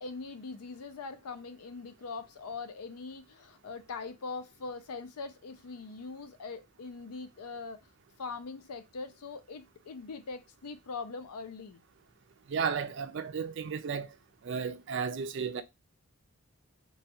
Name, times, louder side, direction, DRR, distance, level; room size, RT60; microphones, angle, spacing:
voice 1, 0.0-7.8 8.2-11.8, left 4 dB, 90° left, 0.5 m, -42 dB
voice 2, 12.5-14.1 14.4-15.6, right 6 dB, 55° right, 0.4 m, -33 dB
3.0 x 2.3 x 2.8 m
head